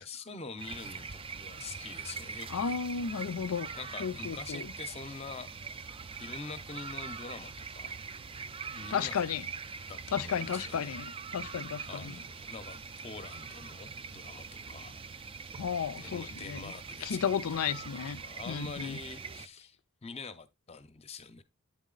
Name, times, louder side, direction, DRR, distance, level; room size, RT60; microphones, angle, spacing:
voice 1, 0.0-2.8 3.8-5.5 6.2-8.0 8.6-9.3 9.9-11.0 11.9-15.0 15.9-17.2 17.5-21.4, left 4 dB, 30° left, 0.7 m, -45 dB
sound 1, 0.6-19.5, right 5 dB, 25° right, 0.4 m, -43 dB
voice 2, 2.5-3.7 4.0-4.7 8.9-9.5 10.1-12.1 15.6-16.7 17.0-19.0, left 7 dB, 85° left, 0.5 m, -33 dB
9.3 x 4.1 x 3.8 m
head